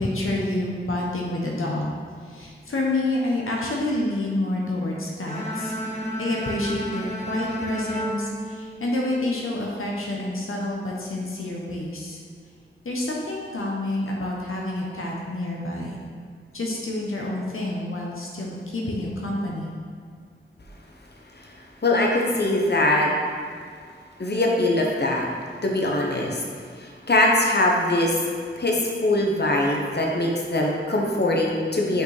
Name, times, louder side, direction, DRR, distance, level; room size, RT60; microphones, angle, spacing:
voice 1, 0.0-1.9 2.2-5.8 6.2-12.2 12.8-16.0 16.5-19.7, left 1 dB, 85° left, -3 dB, 0.8 m, -28 dB
Bowed string instrument, 5.2-9.4, equal, 35° left, 1.4 m, -32 dB
voice 2, 21.8-23.1 24.2-25.2 25.6-26.4 26.8-28.2 28.6-32.0, left 1 dB, 55° left, -1 dB, 0.9 m, -22 dB
5.9 x 5.2 x 3.3 m, 2.1 s
wide cardioid pair, 45°, 21 cm